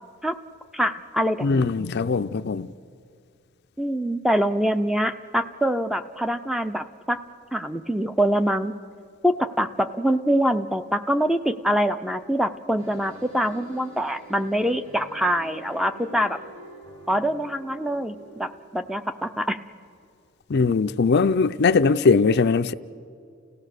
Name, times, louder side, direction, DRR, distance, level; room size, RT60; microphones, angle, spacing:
voice 1, 0.7-1.7 3.8-7.2 7.5-8.7 9.2-16.4 17.1-19.6, equal, ahead, 9 dB, 0.5 m, -24 dB
voice 2, 1.4-2.7 20.5-22.7, left 4 dB, 55° left, 12 dB, 0.4 m, -20 dB
sound 1, 12.8-18.5, equal, 70° right, 2.5 m, -45 dB
30.0 x 16.5 x 6.6 m, 2.3 s
head